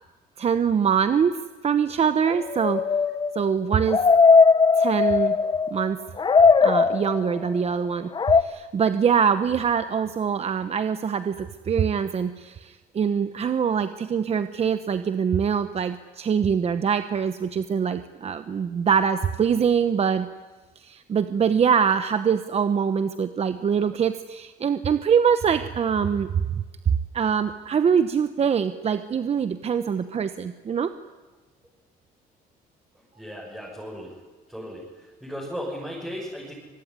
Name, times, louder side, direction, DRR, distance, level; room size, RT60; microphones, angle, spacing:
voice 1, 0.4-1.3 1.6-2.8 3.3-4.0 4.8-5.4 5.7-6.0 6.6-20.3 20.8-26.3 27.1-30.9, right 7 dB, 40° right, 10 dB, 1.0 m, -24 dB
sound 1, 2.3-5.9 6.2-7.5 8.2-8.4, left 5 dB, 30° left, 1.1 m, -19 dB
voice 2, 32.9-34.2 34.5-36.5, equal, 5° right, -4 dB, 7.0 m, -36 dB
25.0 x 21.0 x 9.9 m, 1.3 s
cardioid pair, 110°, 17 cm